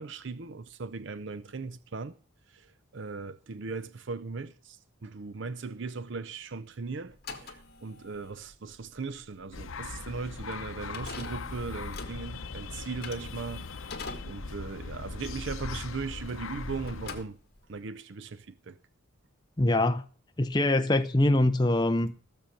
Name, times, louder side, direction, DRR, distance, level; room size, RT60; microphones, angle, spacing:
voice 1, 0.0-2.1 2.9-4.5 5.0-7.1 7.8-13.6 14.3-17.3 17.7-18.3, right 4 dB, 55° right, 0.6 m, -38 dB
sound 1, 7.1-16.6 16.8-17.8, left 4 dB, 50° left, 2.0 m, -45 dB
sound 2, 9.5-17.2, left 3 dB, 70° left, 0.8 m, -40 dB
voice 2, 19.6-20.0 20.4-22.2, left 1 dB, 20° left, 0.6 m, -24 dB
15.5 x 7.1 x 6.5 m
head